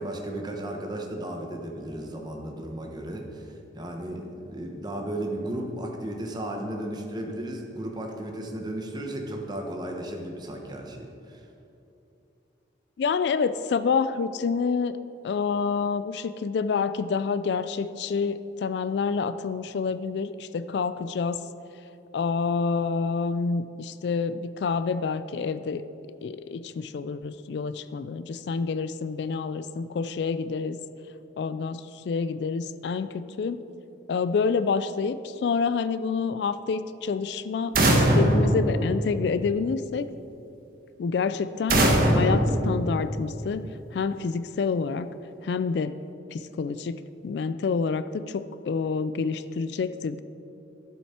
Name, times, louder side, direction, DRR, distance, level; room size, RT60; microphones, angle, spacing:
voice 1, 0.0-11.5, right 1 dB, 25° right, 2 dB, 1.0 m, -35 dB
voice 2, 13.0-15.0 15.2-21.4 22.1-25.8 26.2-30.8 31.4-33.6 34.1-40.1 41.0-45.1 45.4-45.9 46.3-50.2, left 5 dB, 65° left, 13 dB, 0.3 m, -28 dB
sound 1, 37.7-39.5 41.7-43.5, right 1 dB, 50° right, 1.2 m, -22 dB
12.0 x 7.3 x 4.3 m, 2.8 s
head